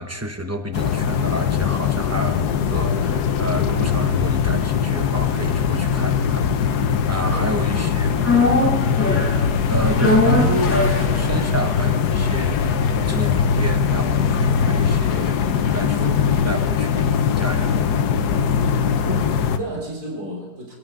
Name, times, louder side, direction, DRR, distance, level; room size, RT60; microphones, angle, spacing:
voice 1, 0.0-8.1 9.6-18.2, equal, 20° right, 5 dB, 0.4 m, -30 dB
sound 1, 0.7-19.6, left 7 dB, 65° left, 1.3 m, -21 dB
voice 2, 7.2-7.9 8.3-8.8 19.0-20.7, right 1 dB, 45° right, -1 dB, 4.1 m, -32 dB
sound 2, 8.2-16.5 16.8-16.9, left 2 dB, 5° left, 5.1 m, -24 dB
26.5 x 12.0 x 3.8 m, 1.1 s
omnidirectional pair, 2.0 m